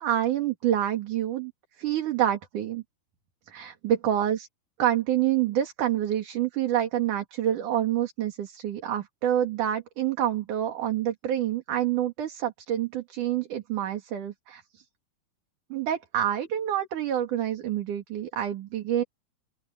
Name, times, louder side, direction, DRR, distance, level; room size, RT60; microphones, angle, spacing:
voice 1, 0.0-1.5 1.8-2.8 3.5-4.5 4.8-14.8 15.7-19.0, right 11 dB, 55° right, 3.4 m, -27 dB
open air
omnidirectional pair, 4.5 m